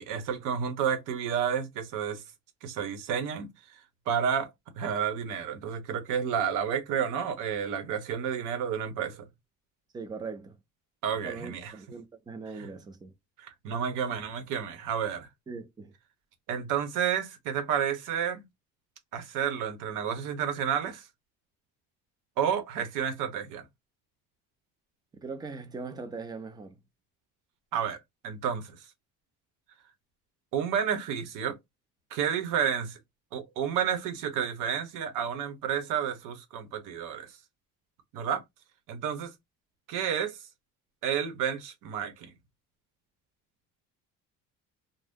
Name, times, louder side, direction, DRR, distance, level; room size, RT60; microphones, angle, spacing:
voice 1, 0.0-2.2 2.6-3.5 4.1-4.5 4.8-9.2 11.0-11.7 12.6-12.7 13.4-15.3 16.5-18.4 19.1-21.1 22.4-23.6 27.7-28.0 28.2-28.8 30.5-31.6 32.1-33.0 33.3-37.3 38.1-38.4 38.9-39.3 39.9-40.4 41.0-42.3, right 8 dB, 70° right, 0.9 m, -30 dB
voice 2, 9.9-10.6 11.2-13.1 15.5-15.9 25.2-26.8, right 4 dB, 15° right, 0.3 m, -40 dB
2.6 x 2.1 x 3.5 m
cardioid pair, 170°, 33 cm